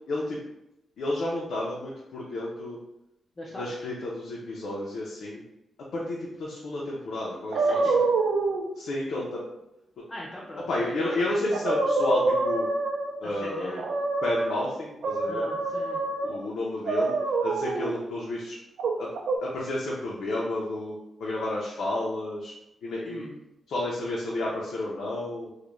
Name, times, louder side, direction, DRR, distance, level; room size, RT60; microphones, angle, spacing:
voice 1, 0.1-0.4 1.0-2.8 3.5-5.4 5.9-7.8 8.8-9.4 10.7-12.7 13.2-13.8 14.2-15.5 16.2-17.2 17.4-18.6 19.0-19.1 19.4-20.9 21.2-22.5 22.8-23.3 23.7-25.5, left 1 dB, 85° left, -4 dB, 0.4 m, -31 dB
voice 2, 3.4-3.7 7.5-8.0 10.1-11.4 13.2-13.8 15.3-16.0 23.0-23.4, left 1 dB, 20° left, -5 dB, 0.3 m, -40 dB
sound 1, 7.5-8.6 11.1-11.2 11.5-13.2 13.8-14.6 15.0-16.4 16.9-17.9 18.8-19.4, right 3 dB, 70° right, 0.3 m, -26 dB
2.4 x 2.1 x 3.0 m, 0.88 s
wide cardioid pair, 180°, 0 cm